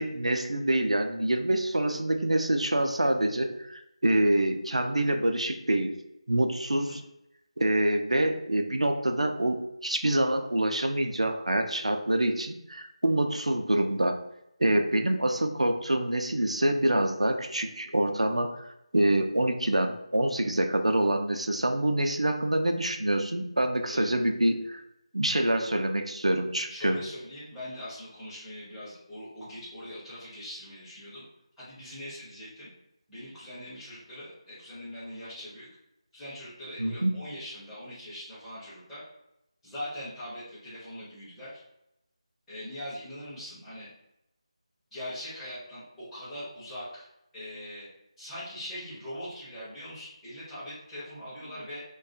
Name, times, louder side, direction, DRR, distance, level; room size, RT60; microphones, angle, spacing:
voice 1, 0.0-5.9 6.3-7.0 7.6-14.2 14.6-24.8 25.1-27.0 36.8-37.2, right 1 dB, 80° right, 5 dB, 0.3 m, -26 dB
voice 2, 26.7-31.2 31.6-32.7 33.1-35.7 36.1-39.0 39.6-41.5 42.5-43.9 44.9-47.1 47.3-47.9 48.2-51.8, left 1 dB, 5° left, -16 dB, 0.6 m, -41 dB
2.3 x 2.2 x 2.6 m, 0.84 s
figure-of-eight pair, 160°, 3 cm